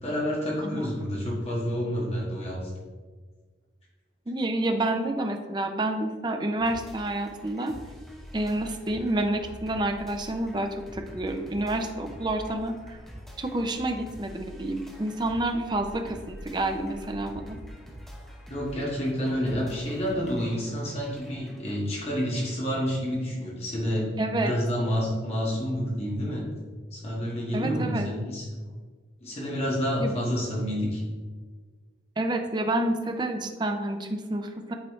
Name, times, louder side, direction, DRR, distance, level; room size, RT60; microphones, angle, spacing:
voice 1, 0.0-2.7 18.5-24.1 24.4-26.4 26.9-28.7 29.2-31.0, equal, 35° left, -4 dB, 1.6 m, -29 dB
voice 2, 4.3-7.7 8.3-13.0 13.4-17.6 24.2-24.5 27.5-28.1 30.0-30.1 32.2-34.7, right 1 dB, 25° right, 5 dB, 0.5 m, -29 dB
sound 1, 6.6-21.7, equal, ahead, 0.9 m, -45 dB
8.4 x 4.2 x 3.2 m, 1.5 s
head